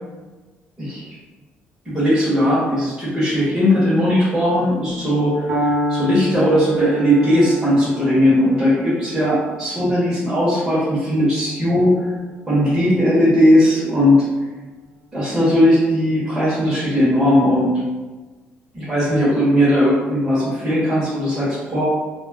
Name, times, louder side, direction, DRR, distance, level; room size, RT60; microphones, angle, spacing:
voice 1, 1.8-12.1 12.5-14.2 15.1-17.8 18.7-21.8, equal, 20° right, -11 dB, 1.0 m, -18 dB
Piano, 5.5-13.4, equal, 85° right, 0.7 m, -29 dB
2.3 x 2.0 x 3.4 m, 1.3 s
cardioid pair, 135°, 4 cm